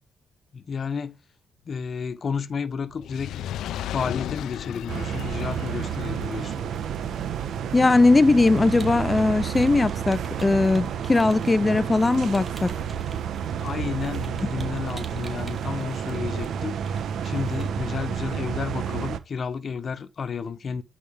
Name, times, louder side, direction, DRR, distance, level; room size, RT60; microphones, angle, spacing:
voice 1, 0.5-1.2 1.7-3.4 3.9-6.6 13.6-20.8, left 6 dB, 45° left, 1.2 m, -31 dB
Fire, 2.9-9.3 10.0-10.1, left 11 dB, 80° left, 0.8 m, -36 dB
sound 1, 4.9-19.2, right 8 dB, 70° right, 1.4 m, -30 dB
sound 2, 6.8-17.9, right 3 dB, 25° right, 3.5 m, -51 dB
voice 2, 7.7-12.8, left 3 dB, 20° left, 0.7 m, -19 dB
12.0 x 4.9 x 7.2 m
cardioid pair, 90°, 0 cm